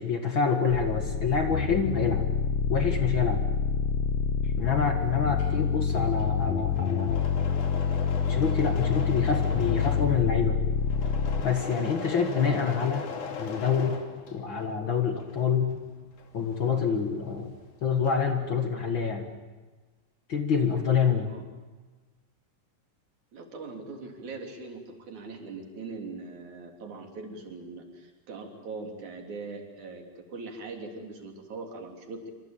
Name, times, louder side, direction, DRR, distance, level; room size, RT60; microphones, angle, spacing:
voice 1, 0.0-2.3 2.7-3.4 4.6-7.3 8.3-10.6 11.4-13.1 13.4-14.0 14.3-15.8 16.3-17.5 17.8-19.3 20.3-21.3, left 6 dB, 45° left, 5 dB, 2.3 m, -27 dB
sound 1, 0.7-11.5, left 6 dB, 60° left, 2.0 m, -27 dB
Engine / Mechanisms, 5.1-14.7 15.1-17.4 17.7-18.4, left 4 dB, 90° left, 4.1 m, -40 dB
voice 2, 23.3-32.3, right 3 dB, 75° right, 3 dB, 4.6 m, -41 dB
25.5 x 25.5 x 9.0 m, 1.3 s
omnidirectional pair, 3.4 m